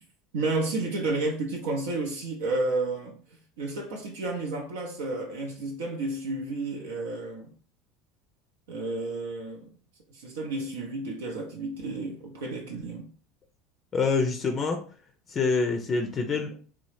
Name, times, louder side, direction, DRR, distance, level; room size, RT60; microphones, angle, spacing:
voice 1, 0.3-3.2 3.6-7.5 8.7-9.7 10.1-13.1, right 2 dB, 75° right, 0.5 m, -31 dB
voice 2, 13.9-14.8 15.3-16.6, left 4 dB, 35° left, 0.4 m, -26 dB
2.9 x 2.0 x 3.2 m
hypercardioid pair, 80°, 0 cm